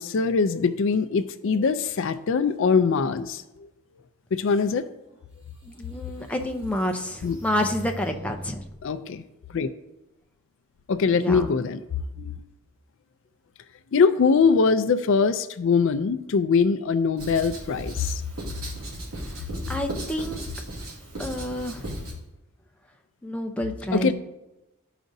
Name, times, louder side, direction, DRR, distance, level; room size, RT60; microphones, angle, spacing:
voice 1, 0.0-3.4 4.3-4.8 7.2-7.4 8.8-9.2 9.5-9.7 10.9-11.8 12.2-12.4 13.9-18.2 23.9-24.1, left 5 dB, 60° left, 11 dB, 0.4 m, -22 dB
sound 1, 5.1-5.2 5.7-8.8, right 1 dB, 25° right, 1.3 m, -41 dB
voice 2, 5.6-8.5 11.1-11.5 19.7-20.4 21.2-21.9 23.2-24.1, left 1 dB, 5° left, 3 dB, 0.6 m, -29 dB
Writing, 17.2-22.2, right 1 dB, 80° right, 2.6 m, -36 dB
13.5 x 5.0 x 2.6 m, 0.98 s
head